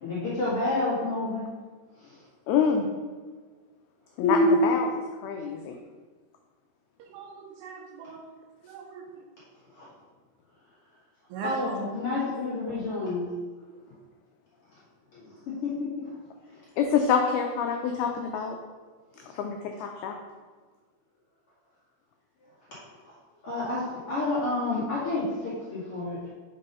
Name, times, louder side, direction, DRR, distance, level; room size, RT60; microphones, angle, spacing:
voice 1, 0.0-1.5 4.2-4.7 9.8-9.9 11.4-13.3 15.1-16.1 19.3-19.4 23.4-26.3, left 1 dB, 45° left, -9 dB, 1.9 m, -28 dB
voice 2, 2.5-2.9 4.2-4.9 5.2-5.8 16.8-18.6 19.4-20.2, left 7 dB, 85° left, 3 dB, 2.2 m, -26 dB
voice 3, 7.0-8.1 8.7-9.2 11.3-11.7 12.7-13.1 13.8-13.9, right 6 dB, 80° right, 2 dB, 2.6 m, -40 dB
5.5 x 5.3 x 5.3 m, 1.4 s
omnidirectional pair, 5.1 m